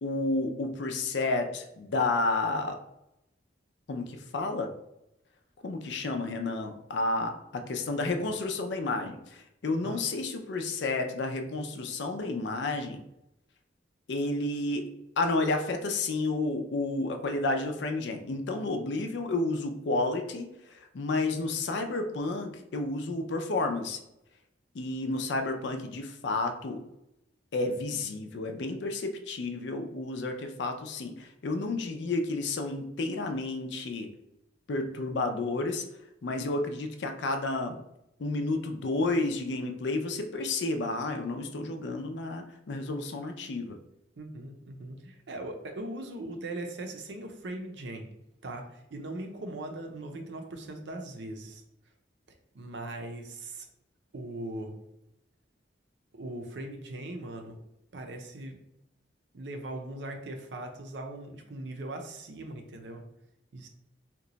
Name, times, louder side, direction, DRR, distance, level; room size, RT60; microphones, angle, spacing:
voice 1, 0.0-2.8 3.9-4.7 5.6-13.0 14.1-14.9 15.2-24.0 24.7-26.8 27.5-34.1 34.7-35.9 36.2-37.8 38.2-43.8, left 2 dB, 70° left, 5 dB, 0.5 m, -31 dB
voice 2, 44.2-48.1 48.4-51.6 52.5-53.7 54.1-54.7 56.1-57.6 57.9-58.6 59.3-63.0 63.5-63.7, right 2 dB, 70° right, 4 dB, 0.5 m, -39 dB
2.9 x 2.2 x 3.9 m, 0.85 s
head